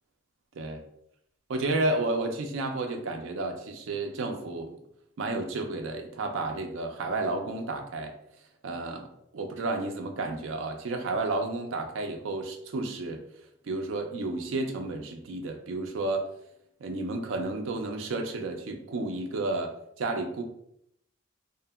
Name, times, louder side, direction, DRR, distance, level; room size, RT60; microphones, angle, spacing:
voice 1, 1.5-4.8 5.2-8.1 8.6-13.2 13.6-16.3 16.8-20.4, right 2 dB, 70° right, 5 dB, 0.4 m, -31 dB
2.7 x 2.5 x 2.3 m, 0.76 s
head